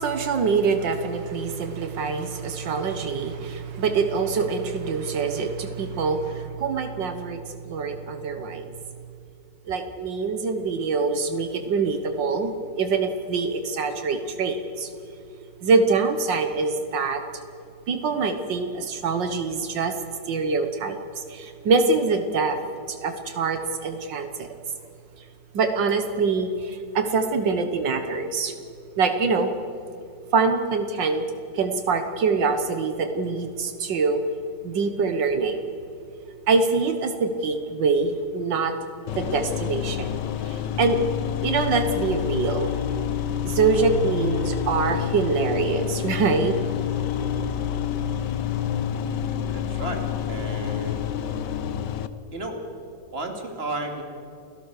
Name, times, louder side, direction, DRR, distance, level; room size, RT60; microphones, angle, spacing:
voice 1, 0.0-8.7 9.7-12.5 12.8-14.9 15.6-17.2 17.9-19.9 20.3-22.6 22.9-24.5 25.5-28.5 29.0-29.5 30.3-31.3 31.5-34.2 34.6-35.7 36.5-38.7 39.2-40.1 40.4-41.0 41.4-42.7 43.4-46.6, right 4 dB, 80° right, 8 dB, 1.9 m, -24 dB
sound 1, 39.1-52.1, left 9 dB, 75° left, 1.5 m, -28 dB
voice 2, 49.5-51.1 52.3-52.6 53.1-54.0, right 2 dB, 35° right, 4 dB, 2.8 m, -33 dB
29.5 x 17.5 x 6.6 m, 2.6 s
omnidirectional pair, 1.9 m